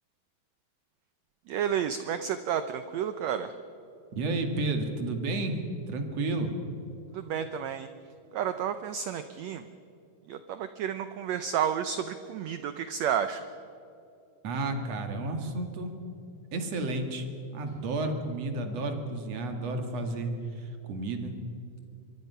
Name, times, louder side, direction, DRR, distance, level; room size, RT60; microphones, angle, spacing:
voice 1, 1.5-3.5 7.1-7.9 8.3-9.7 10.3-13.5, right 8 dB, 75° right, 10 dB, 1.6 m, -31 dB
voice 2, 4.1-5.6 5.9-6.5 14.4-15.9 16.5-17.3 17.5-21.3, right 2 dB, 50° right, 6 dB, 2.9 m, -31 dB
25.0 x 22.5 x 5.7 m, 2.7 s
omnidirectional pair, 4.0 m